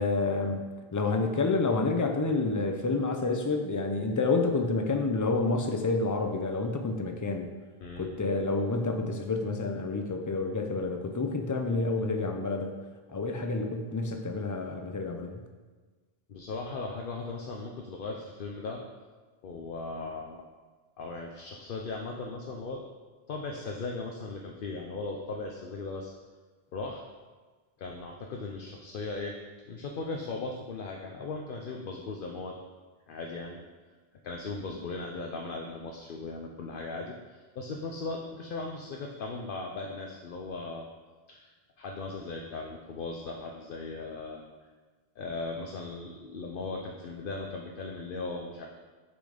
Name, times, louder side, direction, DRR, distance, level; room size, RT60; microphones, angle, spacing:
voice 1, 0.0-7.5 8.0-12.7 13.1-15.4, left 3 dB, 20° left, 4 dB, 0.6 m, -29 dB
voice 2, 16.3-18.8 19.4-20.4 21.0-22.8 23.3-26.1 26.7-27.0 27.8-29.3 29.6-32.5 33.1-33.6 34.2-40.8 41.3-41.5 41.8-44.5 45.2-48.7, left 3 dB, 60° left, 1 dB, 0.8 m, -38 dB
6.9 x 6.2 x 5.0 m, 1.4 s
omnidirectional pair, 1.0 m